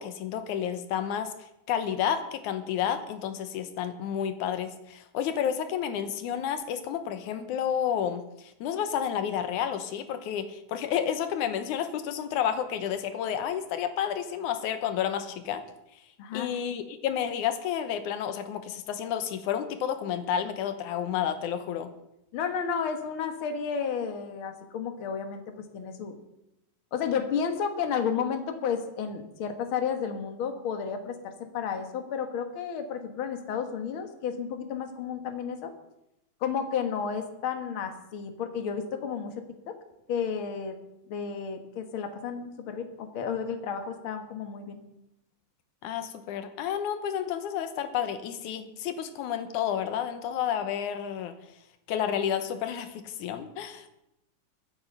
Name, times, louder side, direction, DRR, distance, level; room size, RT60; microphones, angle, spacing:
voice 1, 0.0-15.6 16.3-21.9 45.8-51.4 51.9-53.9, left 9 dB, 90° left, 9 dB, 2.5 m, -30 dB
voice 2, 22.3-25.4 25.7-26.2 26.9-35.7 36.4-39.3 39.7-39.8 40.1-40.8 41.1-44.8, left 6 dB, 50° left, 6 dB, 2.1 m, -32 dB
22.5 x 8.0 x 5.5 m, 0.86 s
omnidirectional pair, 3.4 m